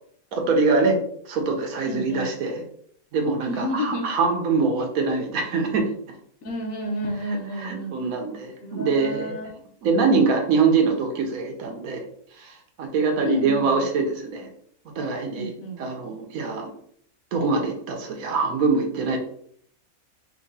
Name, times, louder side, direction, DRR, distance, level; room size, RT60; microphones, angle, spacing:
voice 1, 0.3-1.0 1.2-2.6 3.1-5.9 7.6-9.4 9.8-12.0 12.4-14.5 14.9-15.5 15.8-16.7 17.3-19.2, right 4 dB, 70° right, 2 dB, 1.3 m, -23 dB
voice 2, 1.9-2.3 3.5-4.0 6.4-8.0 8.6-9.5 13.2-13.9 15.3-15.8, left 1 dB, 70° left, 1 dB, 1.4 m, -30 dB
4.1 x 2.8 x 4.0 m, 0.65 s
omnidirectional pair, 1.6 m